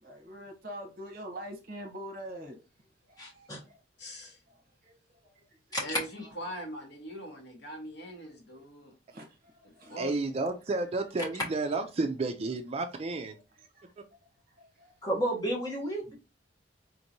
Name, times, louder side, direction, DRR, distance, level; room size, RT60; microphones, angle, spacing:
voice 1, 0.0-2.6 3.1-3.8 4.8-5.4 9.1-10.0 13.6-13.9 14.6-14.9, equal, 50° right, 1.0 m, -45 dB
voice 2, 3.2-3.6 5.7-6.0 15.0-16.2, equal, 20° left, 1.3 m, -31 dB
voice 3, 4.0-4.4 5.8-8.9 9.6-10.1, equal, 65° left, 1.3 m, -42 dB
voice 4, 9.9-13.4, right 3 dB, 35° right, 0.4 m, -31 dB
4.3 x 3.0 x 2.6 m
head